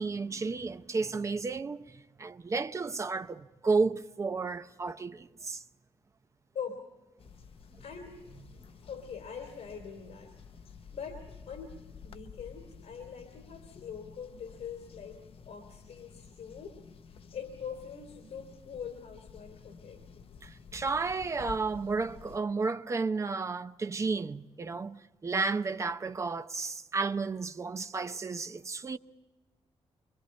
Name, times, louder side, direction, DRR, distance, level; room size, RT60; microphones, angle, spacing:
voice 1, 0.0-5.6 20.4-29.0, right 4 dB, 25° right, 0.6 m, -32 dB
voice 2, 6.5-6.9 7.8-8.2 8.9-10.3 10.9-11.8 12.0-16.8 17.1-20.1, left 6 dB, 75° left, 3.2 m, -43 dB
sound 1, 7.2-22.4, left 6 dB, 55° left, 0.7 m, -51 dB
26.0 x 23.5 x 4.3 m
wide cardioid pair, 170°, 11 cm